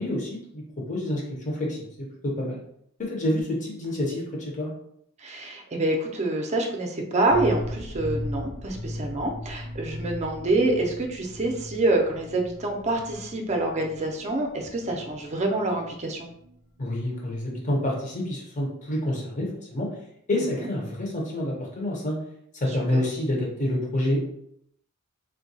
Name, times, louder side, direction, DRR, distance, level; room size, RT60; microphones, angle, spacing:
voice 1, 0.0-2.6 3.0-4.7 16.8-19.9 20.3-22.2 22.5-24.3, left 1 dB, 35° left, -2 dB, 0.8 m, -28 dB
voice 2, 5.2-16.3 22.7-23.0, right 2 dB, 30° right, 2 dB, 0.5 m, -26 dB
sound 1, 7.3-16.9 17.2-17.3 17.5-17.6, left 1 dB, 70° left, 0.8 m, -38 dB
3.6 x 2.2 x 2.7 m, 0.72 s
head